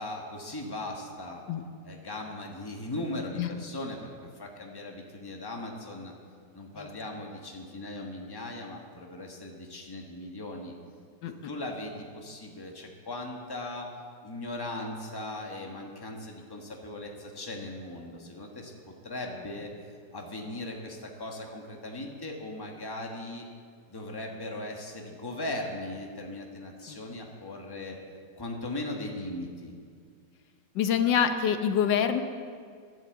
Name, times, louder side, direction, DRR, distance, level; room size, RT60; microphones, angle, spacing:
voice 1, 0.0-1.4 1.8-6.1 6.5-10.7 11.2-13.9 14.2-18.7 19.0-19.7 20.1-23.4 23.9-28.0 28.4-29.7, left 1 dB, 15° left, 1 dB, 1.4 m, -38 dB
voice 2, 30.7-32.2, left 8 dB, 80° left, 8 dB, 1.5 m, -25 dB
12.0 x 10.0 x 7.8 m, 2.1 s
omnidirectional pair, 1.9 m